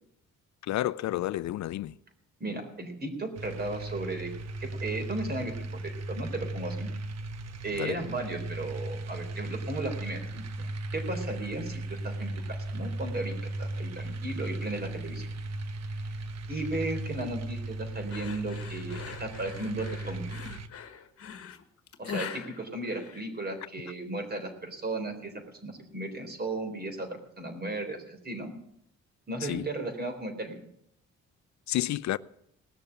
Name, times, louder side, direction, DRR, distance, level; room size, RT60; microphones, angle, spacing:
voice 1, 0.6-2.0 7.8-8.0 29.4-29.7 31.7-32.2, left 14 dB, 65° left, 0.5 m, -30 dB
voice 2, 2.4-4.3 4.6-5.5 5.8-6.9 7.6-15.3 16.5-20.3 22.0-25.3 25.6-28.5 29.3-30.6, right 2 dB, 30° right, 3.9 m, -35 dB
sound 1, 3.4-20.7, right 2 dB, 60° right, 1.2 m, -37 dB
sound 2, 18.1-23.6, left 7 dB, 50° left, 1.5 m, -42 dB
18.5 x 6.8 x 9.9 m
cardioid pair, 90°, 30 cm